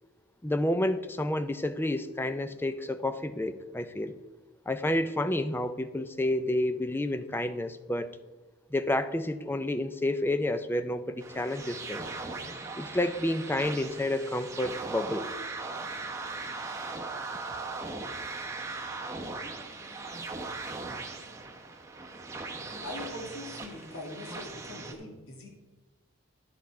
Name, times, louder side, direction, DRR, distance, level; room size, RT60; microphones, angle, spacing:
voice 1, 0.4-4.2 4.7-8.2 8.7-12.1 12.8-15.3, left 1 dB, 10° left, 11 dB, 0.4 m, -30 dB
sound 1, 11.2-24.9, right 3 dB, 15° right, 0.9 m, -39 dB
voice 2, 22.8-25.5, left 1 dB, 80° left, 0 dB, 2.1 m, -41 dB
11.5 x 6.6 x 4.7 m, 1.3 s
head